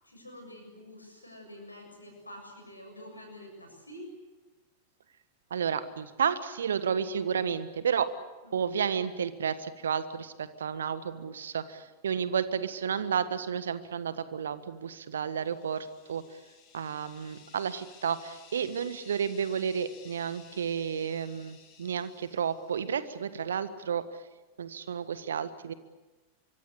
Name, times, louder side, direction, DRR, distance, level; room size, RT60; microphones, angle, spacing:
voice 1, 0.0-4.1 8.4-8.6 15.3-15.5, left 1 dB, 85° left, 3 dB, 7.3 m, -48 dB
voice 2, 5.5-8.1 8.5-16.2 16.7-24.0 24.6-25.7, right 7 dB, 65° right, 13 dB, 1.5 m, -31 dB
sound 1, 15.2-23.0, left 7 dB, 40° left, 7.7 m, -56 dB
24.5 x 24.5 x 8.5 m, 1.2 s
figure-of-eight pair, 90°, 0 cm